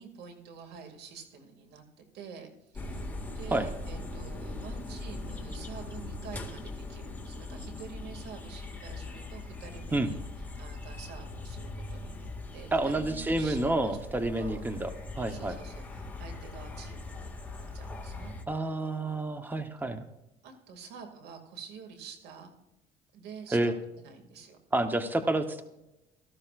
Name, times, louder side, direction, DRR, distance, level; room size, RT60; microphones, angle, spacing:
voice 1, 0.0-10.2 10.6-14.6 15.2-18.3 20.4-22.5 23.1-24.6, right 6 dB, 80° right, 4 dB, 2.4 m, -48 dB
sound 1, 2.7-18.4, left 2 dB, 10° left, 2.0 m, -40 dB
voice 2, 12.7-14.9 15.2-15.6 18.5-20.0 23.5-23.7 24.7-25.6, right 2 dB, 10° right, 8 dB, 1.0 m, -29 dB
17.0 x 14.0 x 2.5 m, 0.93 s
cardioid pair, 110°, 17 cm